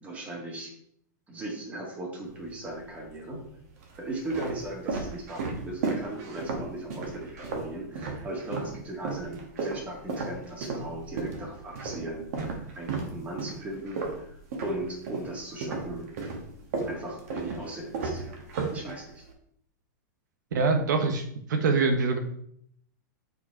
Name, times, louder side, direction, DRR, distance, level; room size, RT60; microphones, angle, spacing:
voice 1, 0.0-0.7 1.3-3.4 4.0-16.1 16.8-18.4 18.7-19.2, right 1 dB, 15° right, 0 dB, 1.7 m, -38 dB
sound 1, 2.2-3.0 3.7-8.8 9.0-15.3 15.6-19.3, right 4 dB, 50° right, 1.8 m, -34 dB
voice 2, 20.5-22.2, right 4 dB, 75° right, 6 dB, 1.3 m, -24 dB
8.3 x 5.0 x 4.6 m, 0.68 s
supercardioid pair, 170°, 10 cm